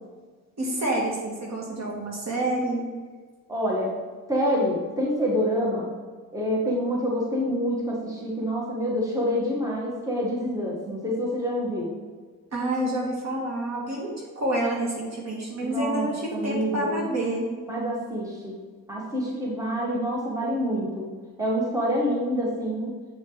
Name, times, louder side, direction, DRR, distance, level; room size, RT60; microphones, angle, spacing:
voice 1, 0.6-2.9 12.5-17.5, right 1 dB, 50° right, -2 dB, 2.2 m, -28 dB
voice 2, 3.5-3.9 4.3-5.9 6.3-11.9 15.6-17.1 17.7-18.5 18.9-21.1 21.4-23.0, equal, 10° right, -4 dB, 1.8 m, -27 dB
7.4 x 5.1 x 4.0 m, 1.5 s
cardioid pair, 90°, 34 cm